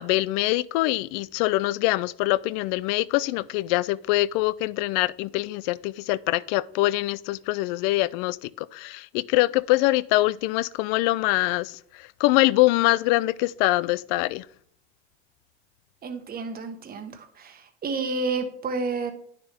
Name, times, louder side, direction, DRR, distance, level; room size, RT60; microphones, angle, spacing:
voice 1, 0.0-14.4, left 18 dB, 60° left, 0.5 m, -24 dB
voice 2, 16.0-19.1, right 3 dB, 25° right, 1.3 m, -30 dB
9.7 x 6.8 x 3.5 m
supercardioid pair, 120°, 34 cm